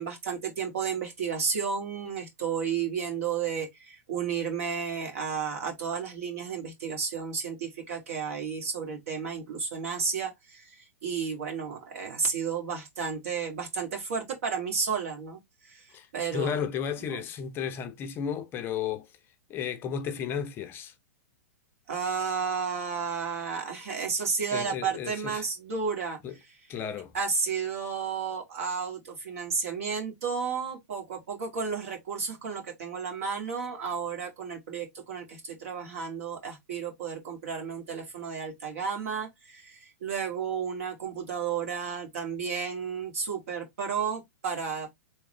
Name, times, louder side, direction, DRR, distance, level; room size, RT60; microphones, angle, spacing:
voice 1, 0.0-15.9 16.1-16.6 17.1-17.2 21.9-26.2 27.1-44.9, right 6 dB, 60° right, 2.2 m, -32 dB
voice 2, 16.3-19.1 19.5-20.9 24.5-25.4 26.2-26.3 26.7-27.1, left 7 dB, 25° left, 0.5 m, -33 dB
3.6 x 3.1 x 3.1 m
hypercardioid pair, 110°, 8 cm